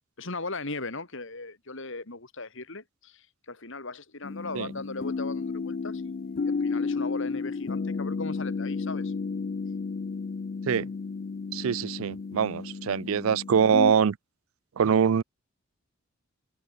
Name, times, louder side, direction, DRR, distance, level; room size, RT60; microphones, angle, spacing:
voice 1, 0.2-9.1, left 3 dB, 60° left, 3.4 m, -38 dB
sound 1, 4.2-13.9, left 4 dB, 45° left, 0.4 m, -32 dB
voice 2, 11.5-14.2 14.8-15.2, right 7 dB, 75° right, 0.4 m, -24 dB
head